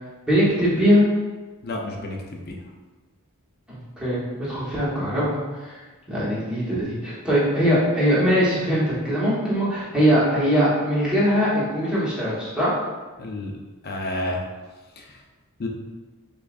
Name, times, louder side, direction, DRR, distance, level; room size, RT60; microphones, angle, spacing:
voice 1, 0.3-1.1 3.7-5.8 6.1-12.7, equal, 5° right, -10 dB, 1.3 m, -21 dB
voice 2, 1.6-2.2 2.5-2.6 13.2-13.5 13.8-14.4 15.0-15.2 15.6-15.7, left 1 dB, 45° left, 1 dB, 0.6 m, -30 dB
6.7 x 2.4 x 2.5 m, 1.3 s
head